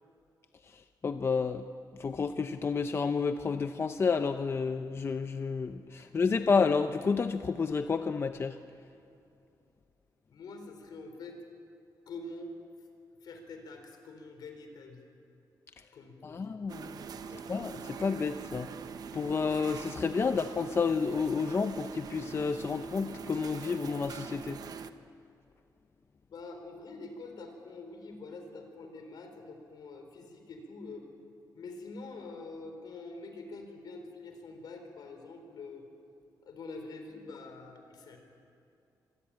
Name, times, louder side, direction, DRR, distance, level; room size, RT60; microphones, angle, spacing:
voice 1, 1.0-1.6 2.0-8.6 16.2-16.9 17.5-18.7 19.1-24.6, left 5 dB, 35° left, 8 dB, 0.6 m, -30 dB
voice 2, 6.0-6.5 10.3-11.4 12.1-12.9 13.2-15.0 15.9-16.5 17.1-17.4 20.2-20.3 26.2-31.1 31.5-35.9 36.4-38.2, left 3 dB, 70° left, 5 dB, 4.1 m, -46 dB
sound 1, 16.7-24.9, right 6 dB, 60° right, 0.9 m, -43 dB
25.5 x 19.0 x 8.9 m, 2.6 s
wide cardioid pair, 130°, 7 cm